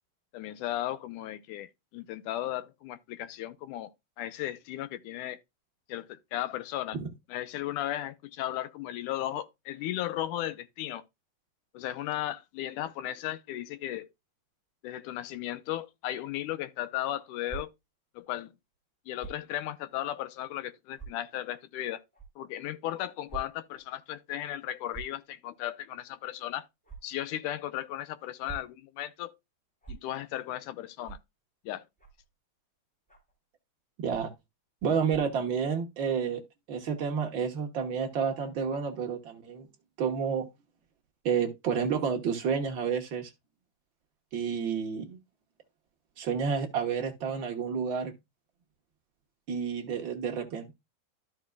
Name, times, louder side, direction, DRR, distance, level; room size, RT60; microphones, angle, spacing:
voice 1, 0.3-3.9 4.2-5.4 5.9-7.0 7.3-11.0 11.7-14.1 14.8-17.7 18.2-18.5 19.1-22.0 22.4-26.7 27.0-29.3 29.9-31.2 31.7-31.8, left 13 dB, 75° left, 1.9 m, -35 dB
sound 1, 17.4-17.6 19.2-19.4 20.2-20.3 20.9-21.1 22.1-22.3 23.3-23.4 23.7-23.9 24.9-25.2 26.8-27.0 28.2-28.7 29.8-30.0 31.0-31.2 32.0-32.2 33.1-33.3 34.1-34.4 35.1-35.3, right 5 dB, ahead, 3.4 m, -43 dB
voice 2, 34.0-34.3 34.8-36.4 36.7-39.7 40.0-40.5 41.2-43.3 44.3-45.2 46.2-48.1 49.5-50.7, right 6 dB, 85° right, 1.0 m, -30 dB
13.0 x 6.0 x 2.3 m
omnidirectional pair, 4.2 m